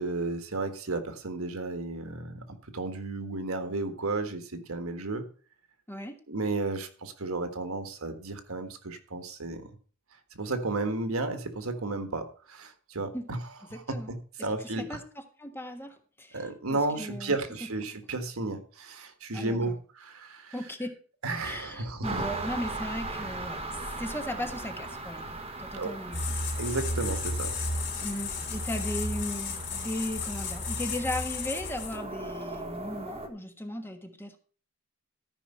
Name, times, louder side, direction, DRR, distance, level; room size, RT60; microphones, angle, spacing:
voice 1, 0.0-5.2 6.3-9.7 10.3-13.4 13.7-15.0 16.3-20.6 21.2-22.2 25.7-26.0 26.6-27.5, right 3 dB, 80° right, 8 dB, 1.6 m, -33 dB
voice 2, 13.7-14.1 14.8-15.0 15.4-16.4 16.7-17.3 19.3-19.7 20.5-20.9 21.4-25.2 25.6-26.4 28.0-34.4, left 1 dB, 10° left, 5 dB, 1.4 m, -36 dB
sound 1, 22.0-33.3, right 2 dB, 30° right, 1.4 m, -39 dB
sound 2, 26.1-32.2, left 3 dB, 55° left, 3.3 m, -33 dB
13.5 x 5.4 x 5.6 m, 0.42 s
head